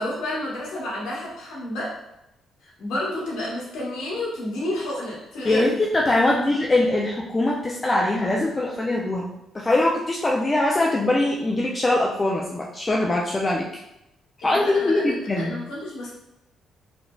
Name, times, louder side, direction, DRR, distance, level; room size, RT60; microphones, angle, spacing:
voice 1, 0.0-1.9 2.6-5.6 6.2-6.6 14.4-16.1, left 1 dB, 85° left, -5 dB, 1.0 m, -31 dB
voice 2, 5.4-9.3 9.5-13.8 14.4-15.5, left 2 dB, 25° left, -2 dB, 0.3 m, -22 dB
3.1 x 2.5 x 2.2 m, 0.85 s
cardioid pair, 90°, 0 cm